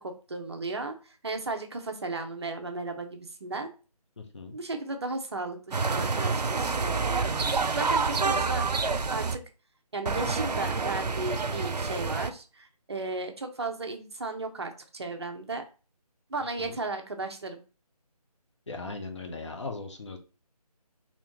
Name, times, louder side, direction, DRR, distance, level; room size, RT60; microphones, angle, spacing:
voice 1, 0.0-3.7 4.5-8.7 9.1-9.4 9.9-15.6 16.3-17.6, right 3 dB, 40° right, 5 dB, 0.6 m, -35 dB
voice 2, 4.2-4.6 16.6-16.8 18.7-20.2, left 3 dB, 45° left, 4 dB, 0.8 m, -38 dB
sound 1, 5.7-9.4 10.1-12.3, right 4 dB, 90° right, 0.5 m, -28 dB
4.2 x 2.8 x 2.9 m, 0.34 s
figure-of-eight pair, 160°, 20 cm